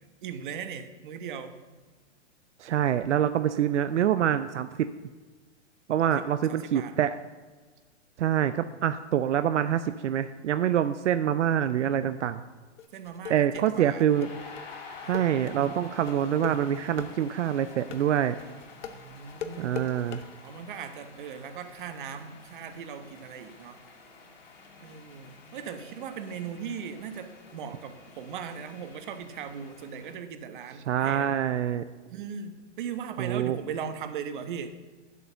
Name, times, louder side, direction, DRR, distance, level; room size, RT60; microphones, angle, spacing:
voice 1, 0.2-1.6 6.1-7.0 12.9-14.0 15.0-15.4 18.9-20.0 20.4-23.8 24.8-31.5 32.1-34.7, right 7 dB, 45° right, 9 dB, 1.1 m, -39 dB
voice 2, 2.6-4.9 5.9-7.1 8.2-12.4 13.3-14.3 15.1-18.4 19.6-20.2 30.9-31.8 33.2-33.6, right 10 dB, 75° right, 11 dB, 0.7 m, -26 dB
sound 1, 12.8-20.2, left 8 dB, 75° left, 1.2 m, -40 dB
sound 2, 13.5-30.1, left 4 dB, 55° left, 3.5 m, -49 dB
10.5 x 7.9 x 6.8 m, 1.3 s
hypercardioid pair, 160°, 36 cm